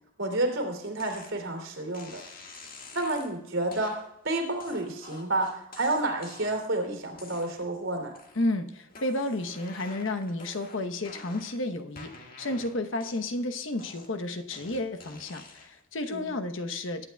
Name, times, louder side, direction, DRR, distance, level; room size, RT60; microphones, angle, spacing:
voice 1, 0.2-2.2 2.9-8.1 16.1-16.4, right 2 dB, 80° right, 2 dB, 2.8 m, -30 dB
sound 1, 1.0-1.3 1.9-3.3 3.7-4.0 4.6-6.7 7.1-7.8 8.1-8.6 8.9-11.6 12.0-13.4 13.8-15.8, left 3 dB, 45° left, 1.7 m, -48 dB
voice 2, 8.3-12.1 12.4-17.1, left 2 dB, 75° left, 7 dB, 1.0 m, -32 dB
20.0 x 8.9 x 2.3 m, 0.85 s
head